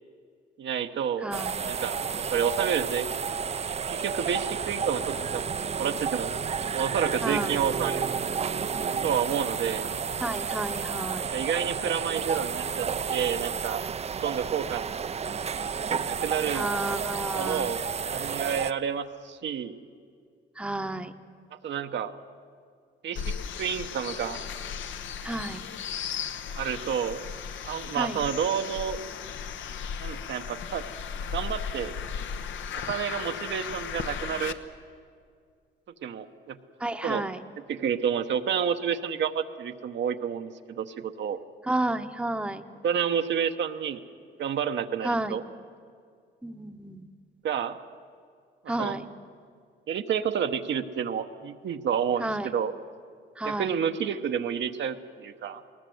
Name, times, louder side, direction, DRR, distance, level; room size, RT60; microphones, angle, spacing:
voice 1, 0.6-1.3 1.6-3.1 3.9-5.5 5.8-6.4 6.7-8.0 9.0-9.9 11.3-13.8 14.2-14.9 16.1-16.7 17.3-17.8 18.1-19.8 21.6-22.1 23.0-23.2 23.6-24.4 26.5-27.3 27.7-29.0 30.0-30.8 31.3-31.9 32.9-34.6 36.0-36.6 37.0-37.2 37.7-41.4 42.8-44.0 44.4-45.4 47.4-47.8 48.8-49.0 49.9-52.7 53.4-55.6, right 8 dB, 65° right, 7 dB, 1.0 m, -29 dB
voice 2, 1.2-1.6 2.1-2.3 7.2-7.6 10.2-11.3 16.5-17.7 20.6-21.1 25.2-25.6 27.9-28.2 36.8-37.4 41.6-42.7 45.0-45.4 46.4-47.1 48.7-49.1 52.2-52.5 53.4-53.8, right 1 dB, 5° right, 8 dB, 0.9 m, -31 dB
sound 1, 1.3-18.7, right 6 dB, 30° right, 0.5 m, -31 dB
sound 2, 23.2-34.5, left 7 dB, 75° left, 1.0 m, -36 dB
20.0 x 19.5 x 7.9 m, 2.2 s
cardioid pair, 90°, 20 cm